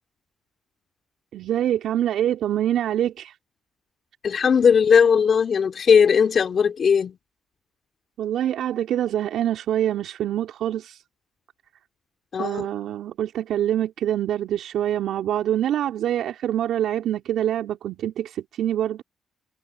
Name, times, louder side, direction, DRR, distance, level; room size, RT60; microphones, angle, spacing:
voice 1, 1.3-3.3 8.2-11.0 12.4-19.0, right 11 dB, 70° right, 3.4 m, -25 dB
voice 2, 4.2-7.2 12.3-12.7, left 6 dB, 55° left, 3.0 m, -18 dB
supercardioid pair, 55°, 0 cm